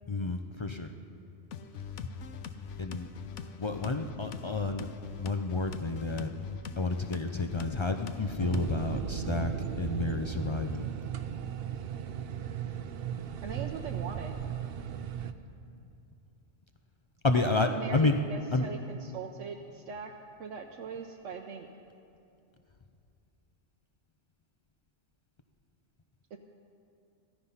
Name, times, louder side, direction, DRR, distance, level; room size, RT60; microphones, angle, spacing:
voice 1, 0.1-0.9 2.8-3.1 3.6-4.9 5.2-6.3 6.8-9.5 9.8-10.8 17.2-18.1 18.5-18.7, left 3 dB, 45° left, 6 dB, 0.3 m, -30 dB
sound 1, 1.5-9.0, left 6 dB, 75° left, 1.0 m, -42 dB
sound 2, 8.4-15.3, right 9 dB, 60° right, 0.7 m, -36 dB
voice 2, 13.4-14.4 17.3-21.7 26.3-26.4, right 5 dB, 80° right, 2 dB, 1.1 m, -41 dB
15.5 x 13.5 x 5.7 m, 2.6 s
omnidirectional pair, 1.3 m